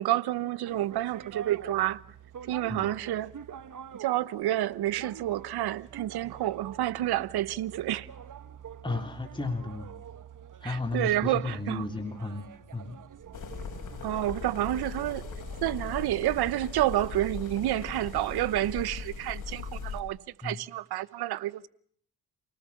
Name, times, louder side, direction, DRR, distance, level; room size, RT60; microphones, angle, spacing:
voice 1, 0.0-2.0 2.5-3.3 4.0-8.1 10.6-11.9 14.0-15.3 15.6-21.7, right 14 dB, 75° right, 1.0 m, -29 dB
sound 1, 0.7-19.3, right 8 dB, 50° right, 1.4 m, -47 dB
voice 2, 8.8-9.9 10.6-12.5 12.7-13.0 20.4-20.6, left 3 dB, 10° left, 3.5 m, -33 dB
sound 2, 13.3-20.0, left 5 dB, 50° left, 5.5 m, -39 dB
28.5 x 19.0 x 7.2 m
supercardioid pair, 65°, 38 cm